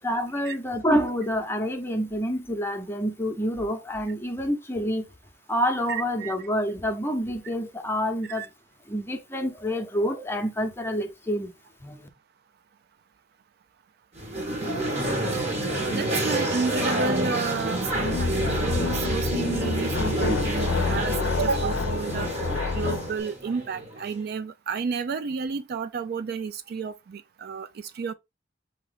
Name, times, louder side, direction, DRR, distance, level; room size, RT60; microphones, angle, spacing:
voice 1, 0.0-5.1 5.5-8.4 8.9-11.5 11.8-12.1, equal, 10° left, 0.8 m, -27 dB
voice 2, 5.9-6.3 8.3-8.5 15.9-22.3 22.7-28.1, right 5 dB, 55° right, 0.4 m, -31 dB
sound 1, 14.2-24.2, right 1 dB, 35° right, 1.4 m, -28 dB
sound 2, 17.9-23.1, left 4 dB, 85° left, 0.5 m, -28 dB
4.3 x 2.9 x 3.9 m
head